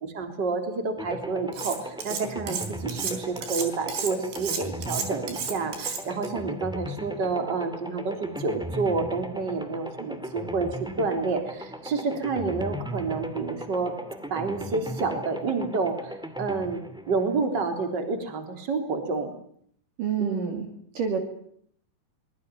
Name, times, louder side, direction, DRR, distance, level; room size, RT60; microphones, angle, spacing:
voice 1, 0.0-13.9 14.3-19.3 20.2-20.6, right 4 dB, 25° right, 5 dB, 3.7 m, -29 dB
sound 1, 1.0-17.9, equal, 5° right, 0.6 m, -37 dB
Cutlery silverware, 1.5-2.2 2.5-6.3, right 6 dB, 80° right, 6.2 m, -32 dB
voice 2, 20.0-21.2, right 6 dB, 55° right, 4 dB, 3.8 m, -29 dB
24.5 x 21.5 x 9.3 m, 0.65 s
omnidirectional pair, 5.0 m